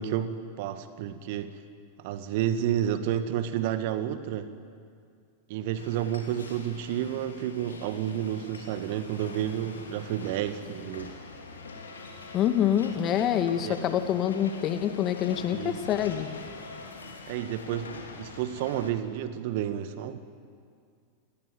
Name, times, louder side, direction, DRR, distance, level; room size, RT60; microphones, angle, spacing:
voice 1, 0.0-1.6 2.0-4.5 5.5-11.1 13.6-13.8 15.5-15.8 17.3-20.2, right 10 dB, 50° right, 11 dB, 1.7 m, -30 dB
sound 1, 5.8-18.9, left 4 dB, 70° left, 3.5 m, -44 dB
voice 2, 12.3-16.3, left 10 dB, 35° left, 9 dB, 2.0 m, -26 dB
28.5 x 20.5 x 9.4 m, 2.2 s
figure-of-eight pair, 90°, 0 cm